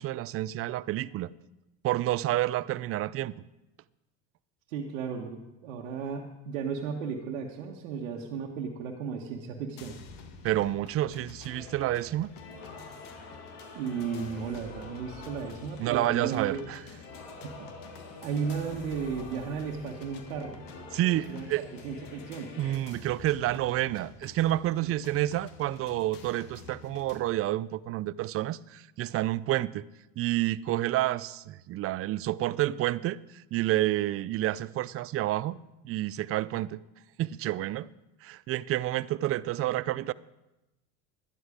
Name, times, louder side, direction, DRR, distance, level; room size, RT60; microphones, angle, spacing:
voice 1, 0.0-1.3 1.8-3.4 10.4-12.3 15.8-16.8 20.9-21.6 22.6-29.8 30.2-35.6 35.8-36.8 37.2-37.9 38.2-40.1, right 15 dB, 40° right, 0.5 m, -29 dB
voice 2, 4.7-10.0 13.7-16.6 17.4-20.6 21.3-21.5 21.8-22.5, right 6 dB, 85° right, 1.4 m, -35 dB
sound 1, 9.8-27.2, left 4 dB, 60° left, 1.8 m, -49 dB
sound 2, 11.5-22.8, left 3 dB, 75° left, 2.7 m, -48 dB
12.0 x 11.0 x 5.0 m
supercardioid pair, 95°, 38 cm